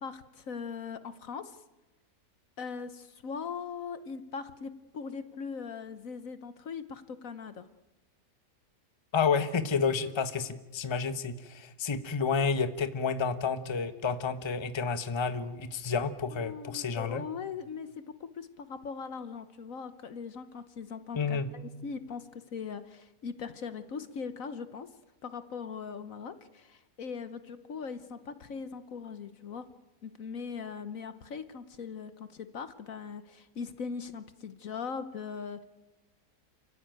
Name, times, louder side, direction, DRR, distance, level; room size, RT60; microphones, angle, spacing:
voice 1, 0.0-1.6 2.6-7.7 16.3-24.9 25.2-29.7 30.0-35.6, left 5 dB, 60° left, 12 dB, 1.3 m, -40 dB
voice 2, 9.1-17.2 21.1-21.5, left 5 dB, 20° left, 10 dB, 1.0 m, -30 dB
28.5 x 15.0 x 9.2 m, 1.1 s
omnidirectional pair, 1.7 m